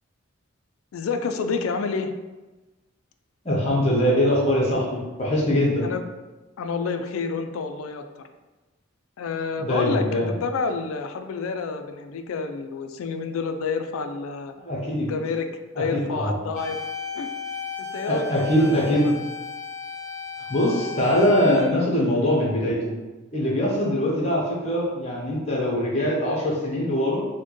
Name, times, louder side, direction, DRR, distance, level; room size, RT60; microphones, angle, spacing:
voice 1, 0.9-2.1 5.8-6.0 6.6-8.2 9.2-14.5 15.1-15.5 15.8-16.9 17.1-17.3 17.8-19.1, left 4 dB, 85° left, 7 dB, 0.4 m, -29 dB
voice 2, 3.4-5.9 9.6-10.3 14.6-15.1 15.8-16.3 18.1-19.1 20.5-22.9 23.3-27.2, equal, 30° left, -4 dB, 0.8 m, -22 dB
sound 1, 16.6-21.6, left 5 dB, 35° right, 0.5 m, -35 dB
4.2 x 2.2 x 3.0 m, 1.1 s
head